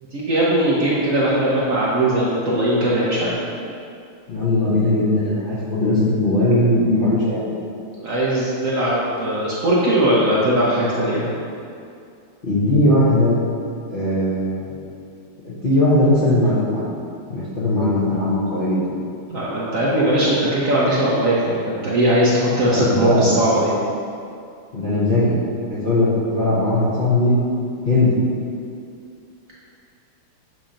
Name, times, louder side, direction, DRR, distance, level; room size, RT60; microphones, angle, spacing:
voice 1, 0.1-3.3 8.0-11.2 19.3-23.7, right 1 dB, 60° right, -7 dB, 0.8 m, -19 dB
voice 2, 4.3-7.5 12.4-13.4 13.9-14.8 15.4-16.9 17.3-18.8 22.6-23.3 24.7-25.3 25.7-27.4 27.8-28.1, left 1 dB, 50° left, -10 dB, 0.6 m, -19 dB
7.5 x 2.9 x 5.0 m, 2.4 s
omnidirectional pair, 2.4 m